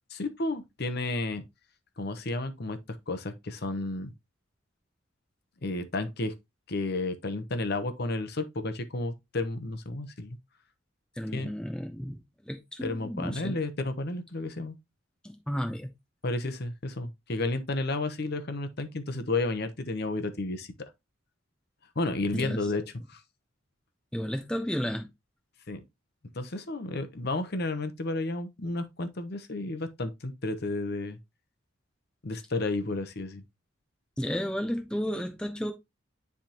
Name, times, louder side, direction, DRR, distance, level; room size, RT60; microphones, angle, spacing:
voice 1, 0.1-1.4 2.0-2.8 3.1-4.1 5.6-6.3 6.7-10.4 11.3-11.5 12.8-14.8 16.2-20.9 22.0-23.2 25.7-25.8 26.3-31.2 32.2-33.4, left 2 dB, 50° left, 0.9 m, -32 dB
voice 2, 11.2-12.2 12.5-13.6 15.2-15.9 22.3-22.6 24.1-25.1 34.2-35.7, equal, 5° left, 0.8 m, -32 dB
10.0 x 3.5 x 2.8 m
head